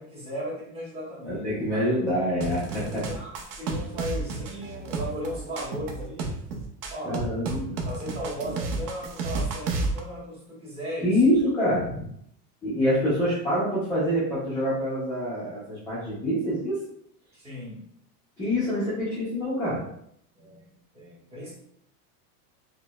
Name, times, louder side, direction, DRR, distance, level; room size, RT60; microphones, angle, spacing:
voice 1, 0.0-1.8 2.8-6.4 6.9-7.3 7.8-11.2 17.3-17.8 18.5-18.6 20.3-20.6 20.9-21.5, equal, 15° right, -6 dB, 0.9 m, -37 dB
voice 2, 1.3-3.0 7.0-7.8 11.0-12.1 12.6-16.8 18.4-19.8, equal, 5° left, -10 dB, 0.5 m, -26 dB
sound 1, 2.4-10.0, right 3 dB, 40° right, 0.5 m, -31 dB
4.7 x 2.1 x 2.2 m, 0.70 s
supercardioid pair, 160°, 45 cm